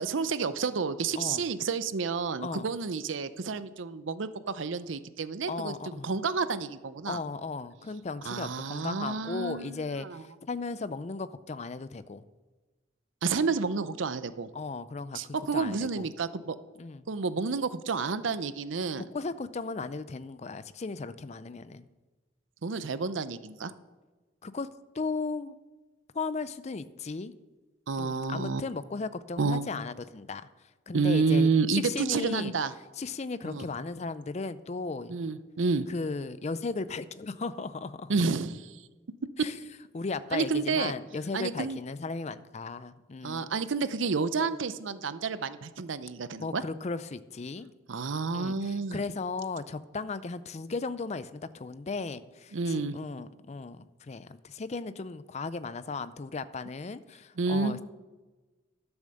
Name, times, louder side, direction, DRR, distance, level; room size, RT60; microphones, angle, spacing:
voice 1, 0.0-7.2 8.2-10.2 13.2-14.5 15.1-16.6 17.1-19.1 22.6-23.7 27.9-28.6 29.4-29.7 30.9-32.7 33.4-33.7 35.1-35.9 38.1-38.8 40.3-40.9 41.3-41.8 43.2-46.6 47.9-49.0 52.5-53.0 57.4-57.7, right 4 dB, 90° right, 13 dB, 0.6 m, -30 dB
voice 2, 5.5-6.1 7.1-12.3 14.5-15.2 15.5-16.1 16.8-17.1 19.0-21.9 24.4-24.7 24.9-25.6 26.1-27.3 28.0-30.4 30.9-32.5 33.0-35.2 35.9-38.1 39.4-39.5 39.9-43.5 46.4-47.7 48.3-57.8, left 4 dB, 35° left, 14 dB, 0.5 m, -36 dB
12.0 x 7.1 x 6.5 m, 1.2 s
head